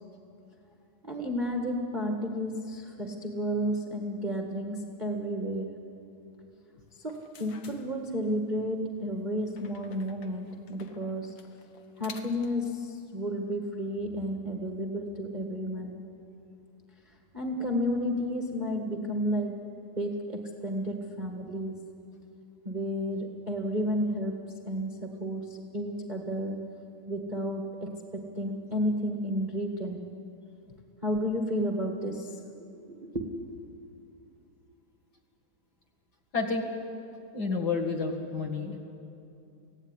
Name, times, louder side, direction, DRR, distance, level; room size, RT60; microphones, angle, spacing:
voice 1, 1.0-5.7 7.0-11.4 12.0-16.0 17.3-19.6 20.0-21.8 22.6-26.7 27.1-30.0 31.0-32.3 32.9-33.5, equal, 55° right, 1 dB, 0.4 m, -32 dB
sound 1, 6.9-8.5 9.5-12.7, left 5 dB, 75° left, 1.1 m, -52 dB
voice 2, 36.3-36.7 37.3-38.8, left 4 dB, 35° left, 1 dB, 1.9 m, -30 dB
24.0 x 17.0 x 9.9 m, 2.7 s
omnidirectional pair, 4.0 m